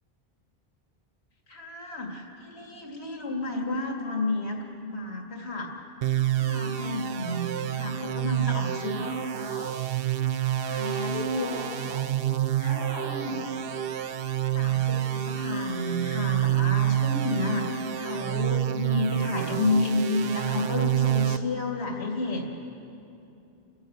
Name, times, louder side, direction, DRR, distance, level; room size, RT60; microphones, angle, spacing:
voice 1, 1.5-5.7 6.4-9.1 10.6-11.9 12.6-13.4 14.5-22.5, left 2 dB, 90° left, 1 dB, 2.4 m, -31 dB
sound 1, 6.0-21.4, right 11 dB, 70° right, 0.9 m, -28 dB
voice 2, 8.9-9.7 11.1-12.1 12.6-13.8, left 1 dB, 50° right, -7 dB, 3.3 m, -40 dB
29.5 x 12.0 x 8.0 m, 2.7 s
omnidirectional pair, 1.1 m